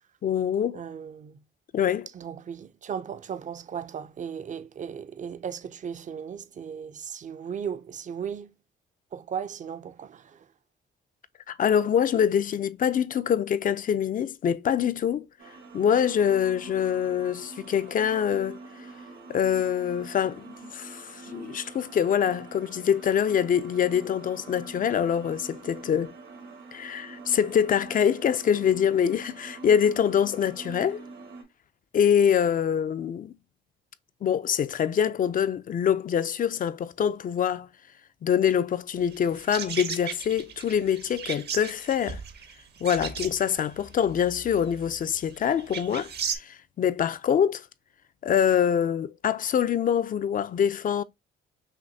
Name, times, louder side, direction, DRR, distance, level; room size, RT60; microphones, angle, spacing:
voice 1, 0.2-0.8 1.7-2.1 11.5-15.2 15.7-18.6 19.3-26.1 26.7-31.0 31.9-33.3 34.2-37.7 38.2-42.2 42.8-47.6 48.2-51.0, left 8 dB, 45° left, 0.4 m, -25 dB
voice 2, 0.7-1.4 2.1-8.5 9.1-10.5, right 7 dB, 40° right, 0.5 m, -36 dB
sound 1, 15.4-31.4, right 3 dB, 80° right, 1.6 m, -45 dB
sound 2, 39.0-46.4, right 7 dB, 55° right, 0.8 m, -37 dB
5.8 x 2.6 x 2.6 m
cardioid pair, 90°, 20 cm